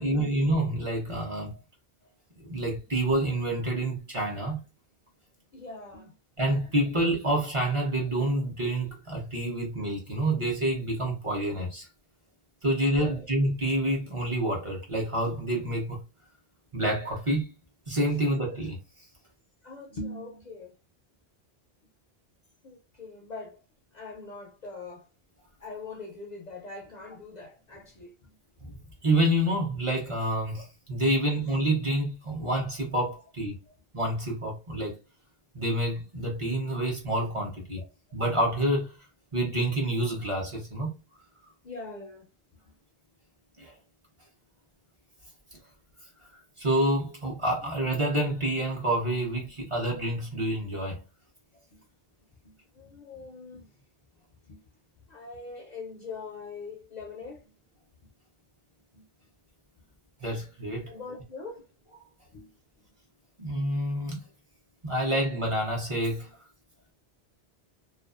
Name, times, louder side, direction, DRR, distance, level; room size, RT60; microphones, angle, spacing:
voice 1, 0.0-1.6 2.4-4.6 6.4-11.9 12.6-16.0 16.7-17.5 17.9-18.8 28.6-28.8 29.0-33.6 33.9-35.0 35.5-37.8 38.1-38.9 39.3-40.9 43.6-43.7 46.6-51.0 60.2-60.9 63.4-64.2 64.8-66.3, right 1 dB, 35° right, 0.7 m, -28 dB
voice 2, 5.5-6.2 13.0-13.3 19.6-20.8 22.6-23.6 23.9-25.1 25.6-28.4 33.7-33.8 37.8-37.9 41.6-42.3 42.7-42.8 47.6-47.7 51.5-51.8 52.4-53.7 54.4-54.6 55.1-57.5 58.9-59.1 60.9-61.7 62.3-62.5, left 3 dB, 55° left, 0.5 m, -42 dB
2.4 x 2.3 x 2.3 m
omnidirectional pair, 1.0 m